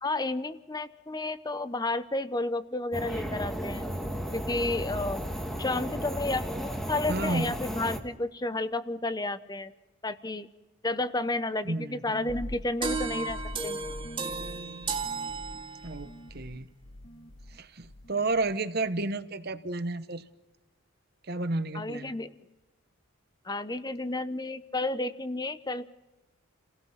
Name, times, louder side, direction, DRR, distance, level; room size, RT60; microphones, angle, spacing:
voice 1, 0.0-3.9 4.3-5.2 5.6-9.7 10.0-10.5 10.8-13.4 13.6-13.9 21.7-22.4 23.4-25.8, left 2 dB, 20° left, 13 dB, 0.8 m, -31 dB
sound 1, 2.9-8.0, equal, ahead, 1.5 m, -34 dB
voice 2, 7.1-7.5 11.6-12.0 15.8-16.7 17.5-20.2 21.2-22.1, right 2 dB, 45° right, 11 dB, 1.0 m, -31 dB
sound 2, 12.1-17.6 17.8-18.6, left 1 dB, 55° left, 1.8 m, -42 dB
sound 3, 12.8-16.1, right 4 dB, 25° right, 2.3 m, -34 dB
30.0 x 17.5 x 5.9 m, 1.1 s
head